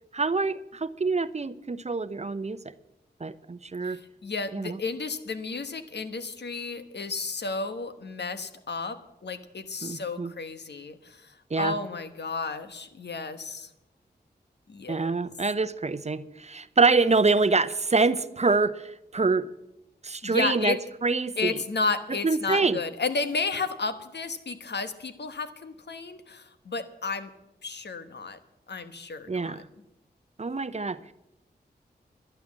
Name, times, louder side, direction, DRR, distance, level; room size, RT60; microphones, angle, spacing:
voice 1, 0.1-2.6 3.2-4.0 4.5-4.8 9.8-10.3 11.5-11.8 14.9-19.5 20.0-20.8 21.0-21.6 22.1-22.8 29.3-29.7 30.4-31.1, right 4 dB, 40° right, 14 dB, 0.8 m, -26 dB
voice 2, 3.8-8.9 9.2-13.7 14.7-15.2 20.2-20.8 21.4-27.3 27.6-28.4 28.7-29.6, left 4 dB, 70° left, 10 dB, 1.2 m, -32 dB
11.5 x 10.5 x 7.4 m, 0.88 s
cardioid pair, 50°, 18 cm